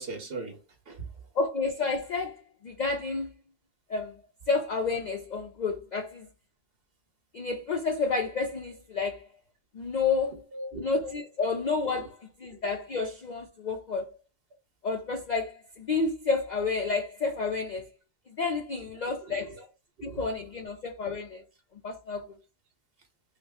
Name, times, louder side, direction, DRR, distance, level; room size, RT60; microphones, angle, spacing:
voice 1, 0.0-1.3 10.3-10.9 11.9-12.1 12.5-12.6 18.8-18.9 19.2-19.7 20.0-20.3, right 3 dB, 50° right, 1.1 m, -41 dB
voice 2, 1.4-3.3 3.9-4.2 4.5-6.3 7.3-9.3 9.7-10.4 10.8-12.1 12.4-14.1 14.8-17.9 18.4-19.6 20.0-21.4 21.8-22.3, left 4 dB, 65° left, 0.4 m, -30 dB
3.6 x 2.1 x 3.4 m
omnidirectional pair, 1.3 m